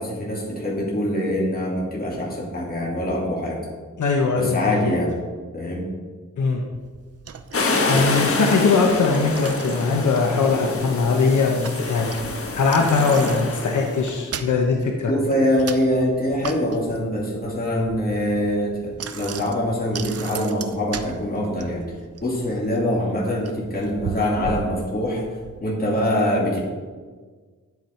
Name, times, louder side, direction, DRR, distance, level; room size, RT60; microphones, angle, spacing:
voice 1, 0.0-3.7 4.3-5.2 5.5-5.9 15.1-21.9 22.2-25.3 25.6-26.6, left 1 dB, 30° left, -3 dB, 2.5 m, -24 dB
voice 2, 4.0-4.9 6.4-6.6 7.9-12.2 12.6-15.1, left 4 dB, 80° left, 2 dB, 1.0 m, -21 dB
Bicycle, 6.7-25.6, right 7 dB, 55° right, 0.6 m, -38 dB
sound 1, 7.5-14.1, left 3 dB, 50° left, 1.3 m, -27 dB
9.8 x 8.2 x 4.4 m, 1.5 s
wide cardioid pair, 115°, 30 cm